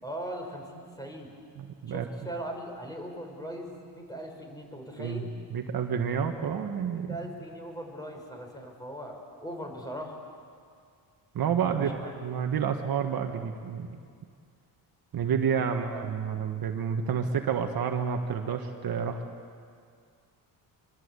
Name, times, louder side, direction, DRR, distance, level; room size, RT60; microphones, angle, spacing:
voice 1, 0.0-1.3 1.9-5.3 6.9-10.2 11.6-12.1 15.5-16.1, equal, 10° left, 2 dB, 5.5 m, -40 dB
voice 2, 1.6-2.1 5.0-5.2 5.5-7.2 11.3-14.0 15.1-19.2, right 7 dB, 55° right, 4 dB, 1.8 m, -29 dB
24.5 x 24.5 x 8.4 m, 2.2 s
cardioid pair, 120°, 42 cm